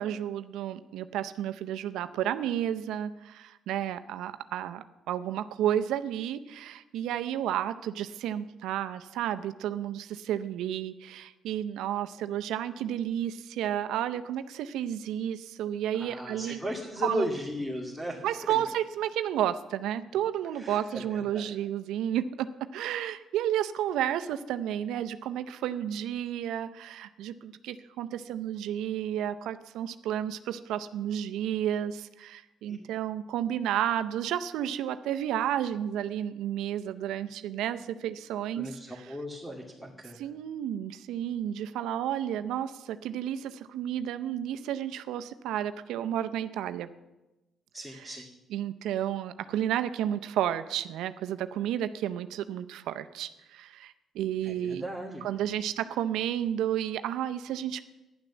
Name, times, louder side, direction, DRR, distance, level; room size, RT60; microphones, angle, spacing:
voice 1, 0.0-16.6 17.0-17.3 18.2-38.8 40.1-46.9 48.0-48.1 48.5-54.8 55.2-57.8, right 10 dB, 90° right, 11 dB, 0.6 m, -32 dB
voice 2, 15.9-18.3 20.6-21.4 32.7-32.8 38.6-40.2 47.7-48.3 54.4-55.2, equal, 5° left, -2 dB, 2.3 m, -36 dB
11.5 x 10.5 x 7.1 m, 1.0 s
cardioid pair, 90°, 0 cm